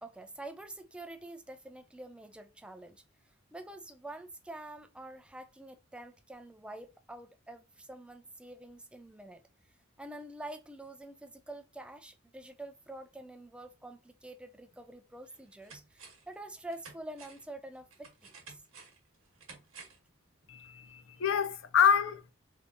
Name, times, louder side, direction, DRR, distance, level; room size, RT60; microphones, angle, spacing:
voice 1, 0.0-3.0 3.5-9.4 10.0-18.6, right 1 dB, 5° right, 0.3 m, -47 dB
sound 1, 14.7-14.8 15.3-16.3 16.7-20.1 20.4-20.5, right 4 dB, 80° right, 1.1 m, -53 dB
voice 2, 20.5-22.3, left 8 dB, 65° left, 0.4 m, -27 dB
3.3 x 2.8 x 2.7 m
head